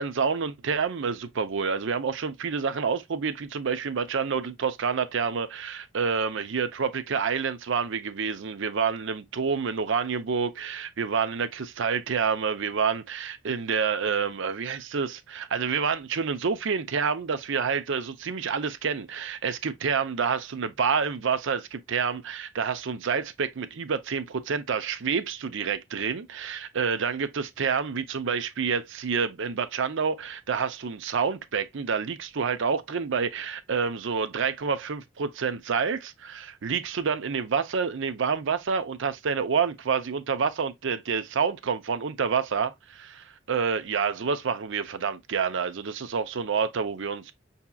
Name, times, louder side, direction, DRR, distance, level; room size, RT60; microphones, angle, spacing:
voice 1, 0.0-47.3, right 6 dB, 65° right, 0.5 m, -28 dB
5.8 x 2.8 x 2.2 m
head